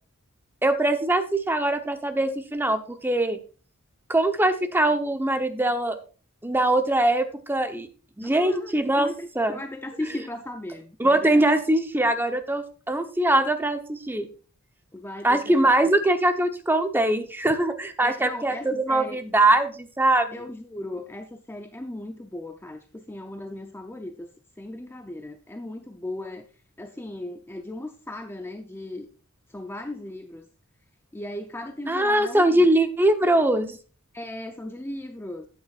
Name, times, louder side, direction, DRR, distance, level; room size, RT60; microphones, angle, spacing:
voice 1, 0.6-3.4 4.1-6.0 6.4-7.9 8.2-9.1 9.4-9.6 11.0-14.3 15.2-20.4 31.9-33.8, right 1 dB, 10° right, 7 dB, 0.9 m, -22 dB
voice 2, 8.2-11.5 14.9-15.6 15.8-16.0 18.0-19.2 20.3-24.3 24.6-26.5 26.8-29.1 29.5-30.5 31.1-32.7 34.1-35.5, left 1 dB, 10° left, 6 dB, 0.5 m, -37 dB
12.0 x 8.6 x 2.5 m, 0.38 s
head